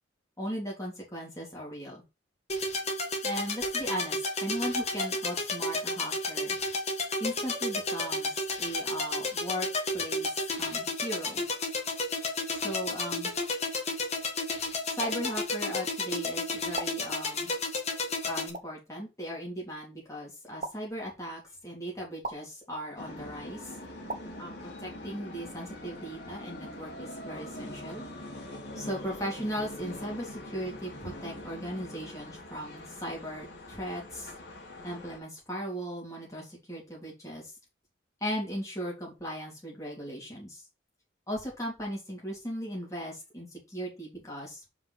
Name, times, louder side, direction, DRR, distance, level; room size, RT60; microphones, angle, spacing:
voice 1, 0.4-2.0 3.2-6.6 7.2-9.7 9.9-11.4 12.5-13.3 15.0-17.5 18.2-23.8 24.4-28.0 28.7-34.3 34.8-37.5 38.2-40.6 41.3-44.6, equal, 15° left, -3 dB, 3.3 m, -37 dB
sound 1, 2.5-18.5, left 2 dB, 35° left, 1.5 m, -32 dB
sound 2, 15.0-15.2 16.7-16.9 18.5-18.7 20.6-20.7 22.2-22.4 24.1-24.2, right 3 dB, 35° right, 0.9 m, -35 dB
sound 3, 23.0-35.2, left 1 dB, 55° left, 2.4 m, -43 dB
5.3 x 5.0 x 5.7 m, 0.27 s
head